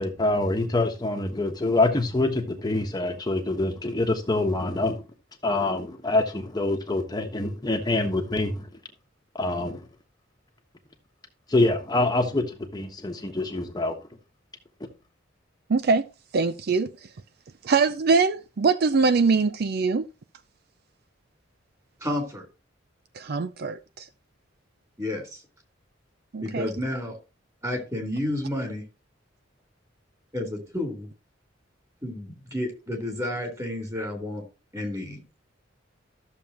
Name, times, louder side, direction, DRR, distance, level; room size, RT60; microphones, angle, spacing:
voice 1, 0.0-5.0 5.4-8.7 9.3-9.8 11.5-14.0, left 2 dB, 20° left, 1.2 m, -25 dB
voice 2, 15.7-16.1 16.3-16.9 17.6-20.0 23.1-24.1 26.3-26.7, right 4 dB, 55° right, 0.5 m, -23 dB
voice 3, 22.0-22.5 25.0-25.4 26.4-27.2 27.6-28.8 30.3-31.1 32.0-34.4 34.7-35.2, left 1 dB, 20° right, 3.7 m, -31 dB
13.5 x 7.0 x 2.9 m
head